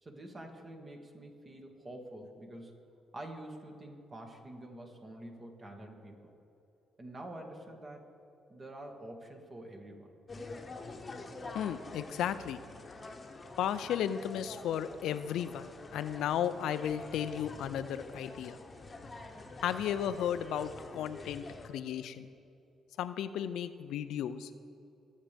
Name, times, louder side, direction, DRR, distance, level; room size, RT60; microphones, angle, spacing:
voice 1, 0.0-2.7 3.1-6.3 7.0-8.0 8.5-10.1, right 1 dB, 35° right, 2 dB, 1.8 m, -47 dB
sound 1, 10.3-21.7, left 3 dB, 30° left, 1.1 m, -47 dB
voice 2, 11.5-12.6 13.6-18.6 19.6-22.3 23.0-24.5, left 9 dB, 80° left, 12 dB, 0.5 m, -34 dB
20.5 x 7.5 x 3.4 m, 2.8 s
cardioid pair, 90°, 0 cm